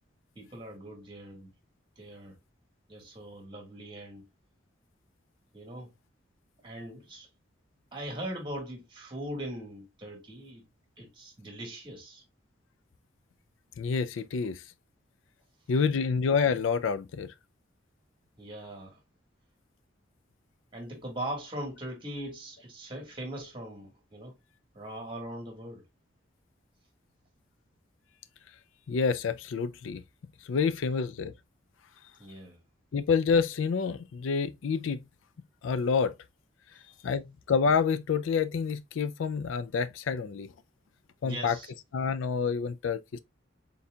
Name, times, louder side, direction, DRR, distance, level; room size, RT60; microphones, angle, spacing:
voice 1, 0.3-1.5 2.0-2.4 2.9-4.2 5.5-5.9 6.6-7.3 7.9-10.6 11.0-12.2 18.4-19.0 20.7-24.3 24.7-25.8 32.2-32.6 41.2-41.7, right 1 dB, 25° right, 1.6 m, -40 dB
voice 2, 13.8-14.6 15.7-17.3 28.9-30.0 30.5-31.3 32.9-35.0 35.6-36.1 37.0-40.5 41.2-41.6 41.9-43.2, left 5 dB, 90° left, 0.4 m, -28 dB
4.2 x 3.9 x 2.3 m
head